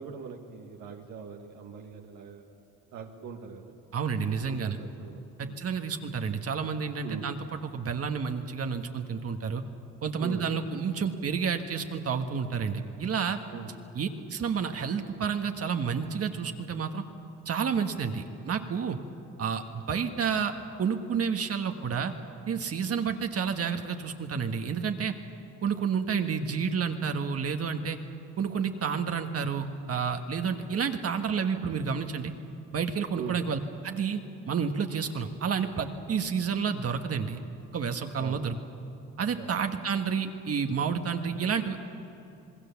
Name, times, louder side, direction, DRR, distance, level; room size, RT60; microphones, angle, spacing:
voice 1, 0.0-2.4 2.9-3.7 4.5-5.6 7.0-7.3 10.2-10.4 13.5-13.7 33.2-33.4 38.2-38.4 39.4-39.5, right 6 dB, 85° right, 2 dB, 1.6 m, -41 dB
voice 2, 3.9-4.8 5.4-9.6 10.0-13.4 13.9-17.0 17.4-19.0 19.4-20.5 20.8-22.1 22.5-25.1 25.6-28.0 28.4-32.3 32.7-34.2 34.5-37.4 37.7-38.6 39.2-41.8, right 6 dB, 50° right, 5 dB, 1.4 m, -30 dB
27.0 x 20.0 x 7.1 m, 2.8 s
cardioid pair, 90°, 30 cm